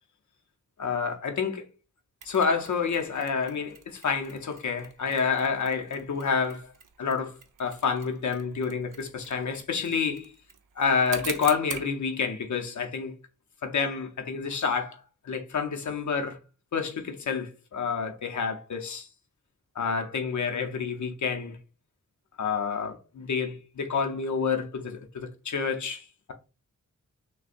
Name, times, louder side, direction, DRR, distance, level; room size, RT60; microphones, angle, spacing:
voice 1, 0.8-1.6 2.2-6.7 7.0-10.3 10.8-13.2 13.6-16.4 16.7-19.1 19.7-21.6 22.4-26.3, left 5 dB, 65° left, 0.8 m, -29 dB
Mechanisms, 2.2-11.9, right 7 dB, 85° right, 0.6 m, -45 dB
6.3 x 2.3 x 2.5 m
wide cardioid pair, 130°, 31 cm